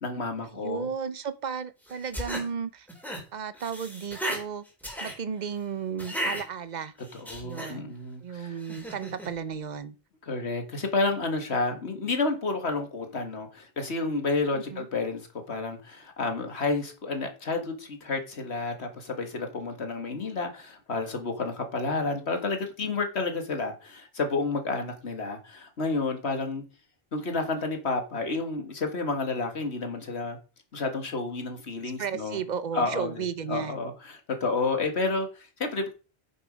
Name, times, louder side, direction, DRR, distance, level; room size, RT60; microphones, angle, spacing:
voice 1, 0.0-0.9 7.1-8.6 10.3-26.6 27.1-30.4 30.7-32.4 32.7-35.9, left 3 dB, 80° left, 2.1 m, -30 dB
voice 2, 0.5-2.9 3.3-4.6 5.0-6.9 7.4-7.9 8.2-10.0 14.5-14.9 32.0-33.8, right 6 dB, 45° right, 0.9 m, -34 dB
sound 1, 1.9-2.5 2.9-3.2 3.5-4.4 4.8-5.1 6.0-6.4 7.0-7.7 8.6-9.3, equal, ahead, 3.4 m, -34 dB
9.2 x 7.2 x 5.2 m
omnidirectional pair, 1.1 m